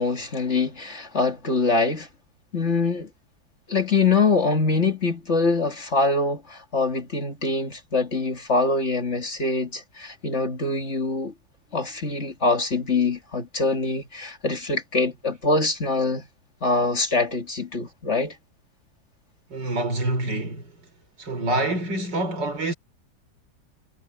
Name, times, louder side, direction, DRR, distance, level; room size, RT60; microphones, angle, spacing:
voice 1, 0.0-2.1 2.5-3.1 3.7-11.3 11.7-16.3 16.6-18.3, left 3 dB, 40° left, 2.5 m, -24 dB
voice 2, 19.5-20.7 21.2-22.7, right 2 dB, 80° right, 4.5 m, -26 dB
omnidirectional pair, 1.9 m